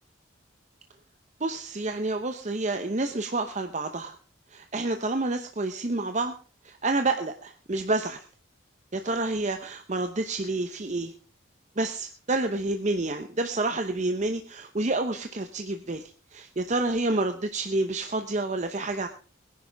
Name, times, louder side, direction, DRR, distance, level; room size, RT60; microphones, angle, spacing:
voice 1, 1.4-4.2 4.5-6.3 6.6-8.2 8.9-11.1 11.8-19.1, right 2 dB, 35° right, 7 dB, 0.8 m, -29 dB
21.0 x 10.5 x 3.5 m, 0.38 s
head